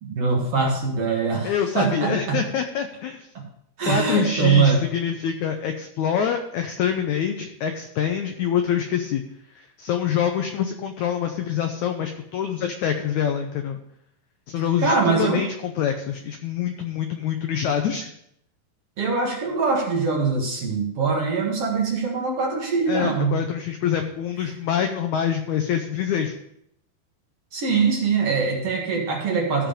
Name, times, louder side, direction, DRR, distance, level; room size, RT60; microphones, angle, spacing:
voice 1, 0.0-2.4 3.8-4.8 14.8-15.4 19.0-23.4 27.5-29.7, right 5 dB, 50° right, -2 dB, 2.3 m, -22 dB
voice 2, 1.4-3.3 3.9-9.2 9.5-13.8 14.5-18.1 22.9-26.3, left 8 dB, 90° left, 5 dB, 1.6 m, -25 dB
15.0 x 5.0 x 5.1 m, 0.74 s
omnidirectional pair, 4.3 m